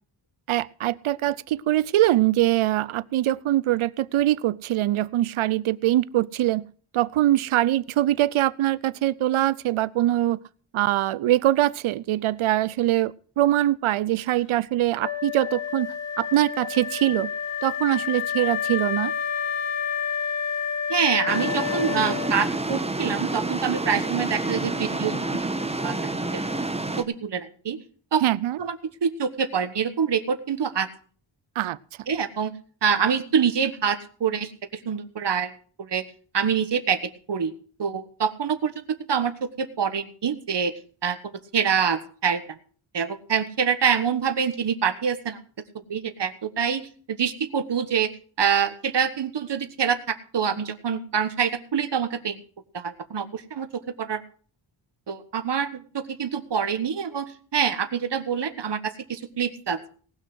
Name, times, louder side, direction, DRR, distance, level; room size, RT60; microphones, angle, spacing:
voice 1, 0.5-6.7 6.9-10.4 10.7-15.9 16.2-17.3 17.6-19.1 28.2-28.6 31.6-31.8, right 14 dB, 85° right, 19 dB, 0.6 m, -23 dB
Wind instrument woodwind instrument, 15.0-22.6, left 7 dB, 65° left, 2.5 m, -29 dB
voice 2, 20.9-25.4 25.8-26.0 26.3-26.4 27.0-27.8 28.1-28.2 28.6-28.8 29.0-30.9 32.1-32.5 32.8-35.5 35.8-36.0 36.3-37.0 37.3-37.5 37.8-40.7 41.0-42.4 42.9-45.4 45.9-48.1 48.4-52.4 52.7-53.7 54.0-54.2 55.1-59.8, right 7 dB, 60° right, 11 dB, 1.4 m, -26 dB
sound 1, 21.3-27.0, right 2 dB, 15° right, 1.1 m, -28 dB
18.5 x 6.3 x 6.1 m, 0.43 s
wide cardioid pair, 85°, 48 cm